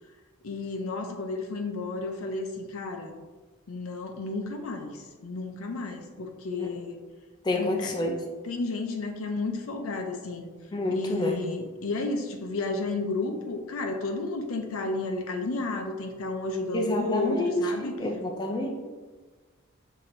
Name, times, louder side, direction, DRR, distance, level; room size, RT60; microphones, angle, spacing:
voice 1, 0.4-3.2 3.7-7.0 7.5-7.9 8.4-10.5 10.9-17.9, left 3 dB, 80° left, 5 dB, 0.5 m, -32 dB
voice 2, 7.4-8.2 10.7-11.4 16.7-18.8, left 1 dB, 20° left, 1 dB, 0.3 m, -28 dB
5.8 x 2.7 x 2.5 m, 1.3 s
head